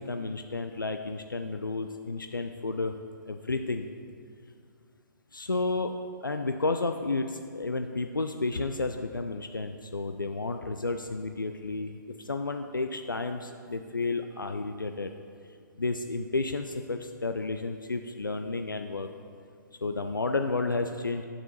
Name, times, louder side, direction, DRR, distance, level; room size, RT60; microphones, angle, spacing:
voice 1, 0.0-2.9 3.3-3.9 5.3-5.9 6.2-15.1 15.8-19.1 19.8-21.2, left 3 dB, 85° left, 6 dB, 0.4 m, -31 dB
10.0 x 6.7 x 2.9 m, 2.2 s
figure-of-eight pair, 120°, 11 cm